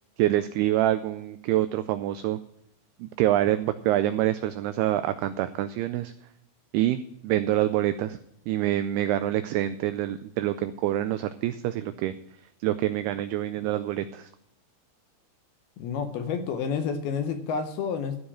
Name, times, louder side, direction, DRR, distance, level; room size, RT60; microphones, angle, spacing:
voice 1, 0.2-2.4 3.0-6.1 6.7-8.2 8.5-12.2 12.6-14.3, right 13 dB, 85° right, 12 dB, 2.2 m, -26 dB
voice 2, 15.8-18.2, left 6 dB, 75° left, 7 dB, 2.4 m, -29 dB
14.5 x 4.8 x 8.6 m, 0.78 s
omnidirectional pair, 5.1 m